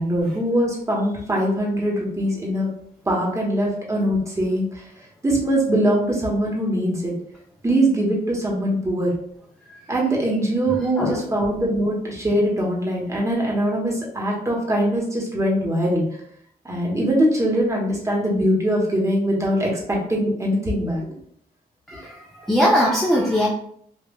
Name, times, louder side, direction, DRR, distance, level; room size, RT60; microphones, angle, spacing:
voice 1, 0.0-2.7 3.0-4.9 5.2-7.1 7.6-9.1 9.9-16.0 16.6-21.1, right 1 dB, 20° right, -3 dB, 0.9 m, -22 dB
voice 2, 10.7-11.2 21.9-23.5, equal, ahead, -4 dB, 0.4 m, -21 dB
5.2 x 2.3 x 2.3 m, 0.65 s
wide cardioid pair, 170°, 17 cm